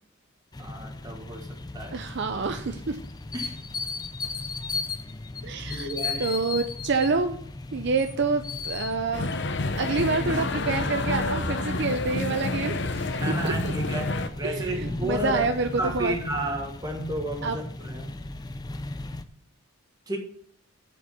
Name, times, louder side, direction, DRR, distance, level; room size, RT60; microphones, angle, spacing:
sound 1, 0.5-19.2, left 3 dB, 20° left, 0.4 m, -36 dB
voice 1, 0.6-2.1 3.3-3.6 5.6-6.4 13.2-15.4 15.8-18.1 20.1-20.2, right 1 dB, 20° right, 2 dB, 1.5 m, -32 dB
voice 2, 1.9-3.0 5.4-5.9 6.2-7.4 7.7-9.3 9.8-13.5 14.4-15.7 15.9-16.1 17.4-17.6, right 4 dB, 55° right, 7 dB, 0.5 m, -27 dB
sound 2, 9.1-14.3, left 3 dB, 55° left, 0.7 m, -29 dB
7.9 x 5.1 x 6.9 m, 0.64 s
head